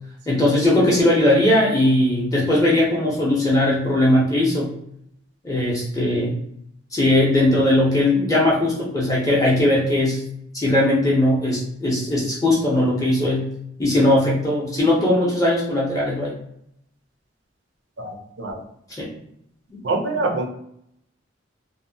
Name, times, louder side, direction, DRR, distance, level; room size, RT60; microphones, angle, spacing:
voice 1, 0.3-4.7 5.4-6.4 6.9-10.2 10.5-13.5 13.8-16.3 19.0-19.1 19.7-19.8, left 1 dB, 15° left, -5 dB, 0.6 m, -19 dB
voice 2, 18.0-18.6 19.8-20.5, right 2 dB, 60° right, 3 dB, 0.5 m, -25 dB
2.6 x 2.1 x 2.7 m, 0.74 s
head